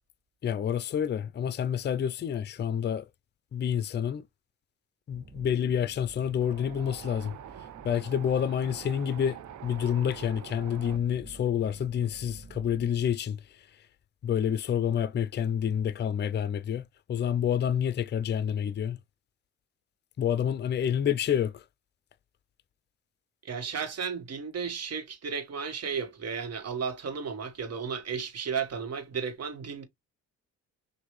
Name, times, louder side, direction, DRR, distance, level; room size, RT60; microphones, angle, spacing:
voice 1, 0.4-3.0 3.5-4.2 5.1-7.4 7.8-13.6 14.2-16.8 17.1-19.0 20.2-21.6, left 9 dB, 35° left, 0.5 m, -28 dB
sound 1, 5.1-13.1, right 3 dB, 30° right, 1.5 m, -50 dB
Wind, 6.4-11.0, right 11 dB, 70° right, 0.7 m, -45 dB
voice 2, 23.4-29.9, right 6 dB, 55° right, 1.5 m, -34 dB
6.2 x 2.6 x 3.1 m
cardioid pair, 90°, 30 cm